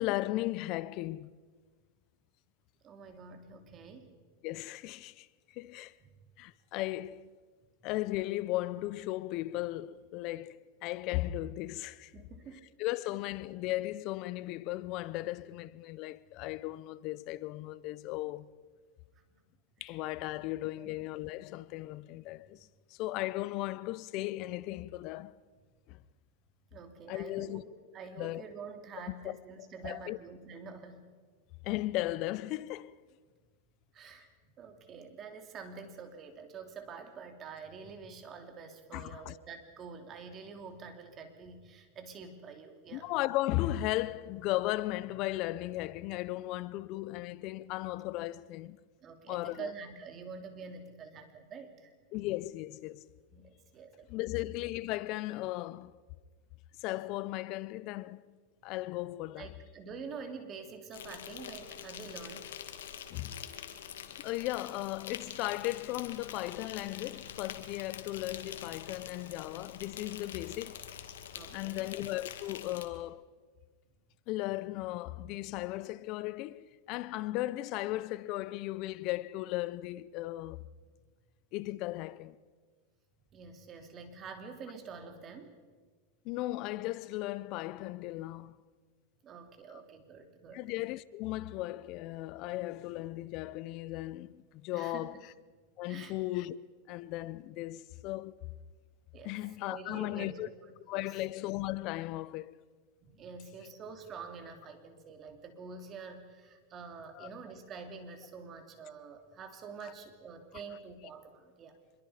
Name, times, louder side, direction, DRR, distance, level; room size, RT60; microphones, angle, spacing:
voice 1, 0.0-1.4 4.4-5.3 5.5-5.9 6.4-7.3 7.8-12.1 12.8-18.5 19.8-22.6 22.9-25.3 25.9-26.0 27.1-27.6 28.2-28.4 29.2-29.4 29.8-30.2 31.6-32.9 38.9-39.4 42.9-48.8 49.3-49.7 52.1-53.1 54.1-55.9 56.8-58.4 58.6-59.5 63.1-63.5 64.2-70.8 71.5-73.3 74.3-80.7 81.5-82.4 86.2-88.6 90.5-95.1 95.8-96.6 96.9-98.5 99.2-100.5 100.9-102.6 107.1-107.3 109.8-109.9, left 17 dB, 50° left, 0.8 m, -36 dB
voice 2, 2.8-4.1 6.0-6.2 12.1-12.7 19.1-19.2 19.9-20.0 20.8-20.9 26.7-31.0 33.9-34.3 34.6-43.1 49.0-51.9 53.3-54.1 59.4-62.5 71.3-71.9 83.3-85.5 89.2-90.6 94.7-95.1 95.9-96.1 99.1-99.4 99.7-100.5 100.9-101.1 103.1-111.8, right 5 dB, 30° right, 3.1 m, -47 dB
Insect, 60.9-72.9, left 9 dB, 90° left, 2.1 m, -45 dB
25.5 x 22.5 x 5.1 m
supercardioid pair, 130°, 0 cm